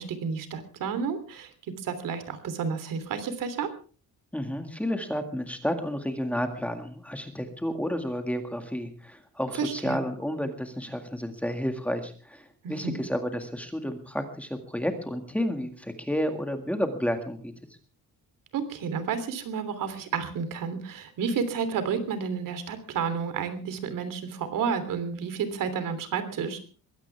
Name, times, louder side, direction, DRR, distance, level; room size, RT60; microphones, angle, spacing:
voice 1, 0.0-1.5 1.8-3.7 9.6-10.0 12.6-13.0 18.5-26.6, right 6 dB, 70° right, 11 dB, 3.2 m, -31 dB
voice 2, 4.3-17.5, equal, 5° left, 6 dB, 1.9 m, -31 dB
22.0 x 16.5 x 3.5 m, 0.39 s
cardioid pair, 165°, 33 cm